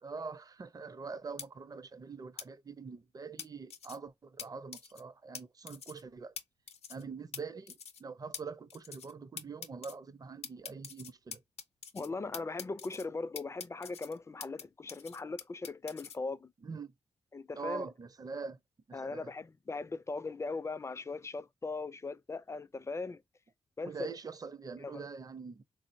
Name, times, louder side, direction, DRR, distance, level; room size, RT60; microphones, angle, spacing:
voice 1, 0.0-6.3 6.9-11.4 16.6-16.9 17.5-18.6 18.9-19.3 23.8-25.6, right 5 dB, 35° right, 0.5 m, -44 dB
sound 1, 1.4-1.5 2.4-2.5 3.4-4.0 4.4-4.5 4.7-5.0 5.3-5.4 5.7-6.0 6.4-6.5 6.7-7.0 7.3-7.4 7.7-8.0 8.3-8.4 8.7-9.1 9.4-9.9 10.4-12.1 12.3-13.0 13.4-14.6 14.9-16.2, left 7 dB, 85° left, 0.6 m, -44 dB
voice 2, 11.9-16.5 17.3-17.9 18.9-23.2 23.8-24.1 24.8-25.0, left 3 dB, 25° left, 0.3 m, -39 dB
3.7 x 2.0 x 2.5 m
cardioid pair, 50°, 10 cm